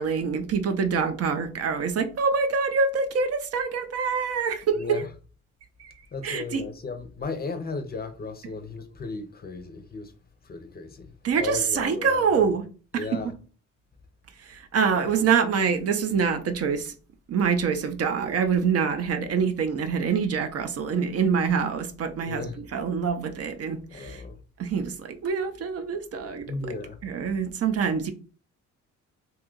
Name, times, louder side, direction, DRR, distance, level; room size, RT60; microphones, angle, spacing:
voice 1, 0.0-5.0 5.8-5.9 6.2-6.6 11.2-12.7 12.9-13.2 14.5-16.9 17.3-22.4 22.7-24.2 24.6-26.8 27.0-28.1, right 6 dB, 55° right, 0.6 m, -25 dB
voice 2, 4.7-5.1 6.1-10.1 10.4-12.3 12.9-13.3 22.2-22.6 23.9-24.4 26.5-27.0, left 3 dB, 30° left, 0.6 m, -35 dB
2.7 x 2.3 x 3.7 m
cardioid pair, 90°, 30 cm